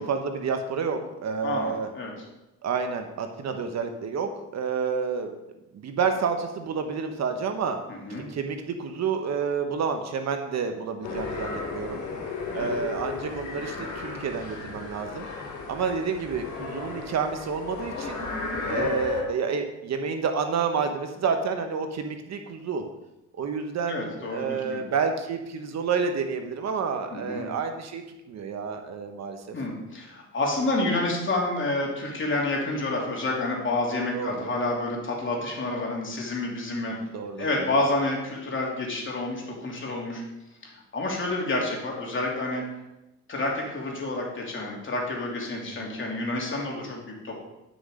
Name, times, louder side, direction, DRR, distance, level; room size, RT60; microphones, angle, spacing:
voice 1, 0.0-1.9 2.6-5.3 5.7-7.8 8.3-12.0 12.5-15.3 15.7-18.2 18.7-22.8 23.3-29.4 34.1-34.5 36.9-37.7 45.6-46.0, right 5 dB, 60° right, 6 dB, 1.2 m, -29 dB
voice 2, 1.4-2.1 7.9-8.3 12.5-12.7 18.5-18.9 23.9-24.8 27.1-27.5 29.5-36.9 37.4-40.2 40.6-42.6 43.3-47.3, left 2 dB, 40° left, -2 dB, 3.1 m, -29 dB
sound 1, 11.0-19.2, left 3 dB, 75° left, 3.0 m, -34 dB
10.0 x 6.3 x 5.0 m, 0.95 s
cardioid pair, 90°, 30 cm